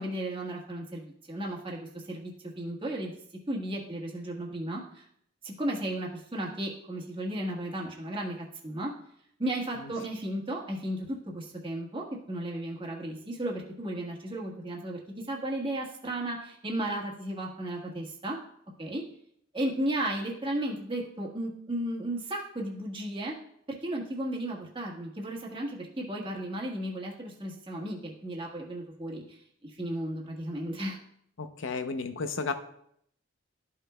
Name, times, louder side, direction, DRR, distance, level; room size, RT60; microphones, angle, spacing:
voice 1, 0.0-3.2 3.5-5.0 5.4-8.9 9.4-18.4 18.8-19.0 19.5-23.4 23.7-31.0, right 1 dB, 25° right, -2 dB, 1.3 m, -34 dB
voice 2, 31.4-32.5, left 4 dB, 65° left, 9 dB, 0.6 m, -33 dB
13.0 x 5.6 x 2.2 m, 0.70 s
head